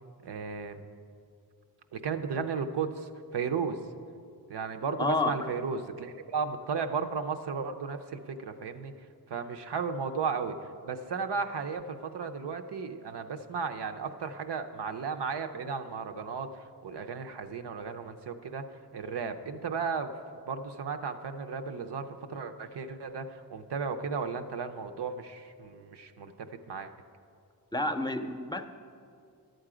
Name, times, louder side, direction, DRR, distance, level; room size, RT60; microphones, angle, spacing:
voice 1, 0.2-0.8 1.9-3.8 4.5-8.9 9.3-20.1 20.5-26.9, right 5 dB, 90° right, 7 dB, 0.6 m, -35 dB
voice 2, 5.0-5.3 27.7-28.6, left 2 dB, 10° left, 8 dB, 0.6 m, -29 dB
11.0 x 7.8 x 4.9 m, 2.4 s
cardioid pair, 50°, 40 cm